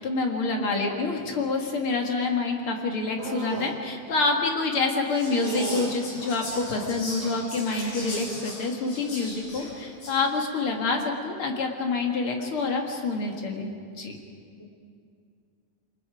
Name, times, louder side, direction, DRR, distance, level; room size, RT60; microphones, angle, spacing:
voice 1, 0.0-13.7 14.0-14.2, left 3 dB, 45° left, 2 dB, 2.3 m, -27 dB
voice 2, 0.5-1.0 14.6-14.7, left 3 dB, 10° left, -2 dB, 2.2 m, -36 dB
sound 1, 3.2-3.8 5.2-6.0 6.7-7.6 8.1-8.5 8.8-9.3 10.8-11.0, right 5 dB, 70° right, 3.0 m, -36 dB
Whispering, 5.1-10.3, left 1 dB, 85° left, 8.1 m, -38 dB
29.0 x 24.0 x 4.9 m, 2.3 s
omnidirectional pair, 4.2 m